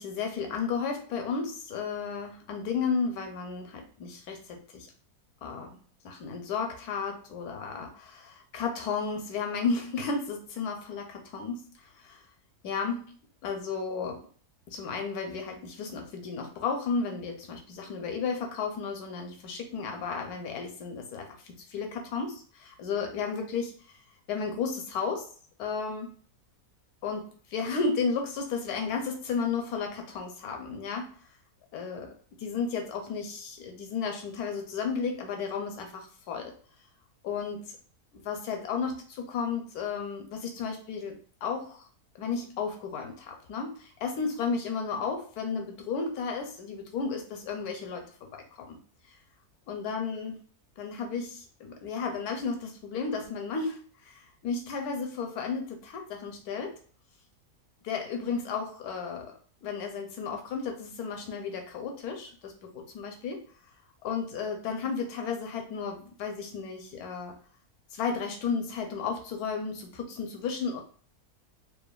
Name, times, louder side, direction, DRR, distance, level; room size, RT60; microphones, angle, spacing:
voice 1, 0.0-4.9 5.4-5.8 6.0-11.6 12.0-12.2 12.6-13.1 13.4-14.3 14.7-23.7 24.3-25.3 25.6-26.1 27.0-31.1 31.7-32.1 32.4-36.5 37.2-37.8 38.1-41.9 42.2-48.8 49.7-50.4 50.8-56.8 57.8-59.3 59.6-63.4 64.0-67.3 67.9-70.8, left 5 dB, 80° left, 3 dB, 1.1 m, -33 dB
3.1 x 2.2 x 2.2 m, 0.43 s
omnidirectional pair, 1.6 m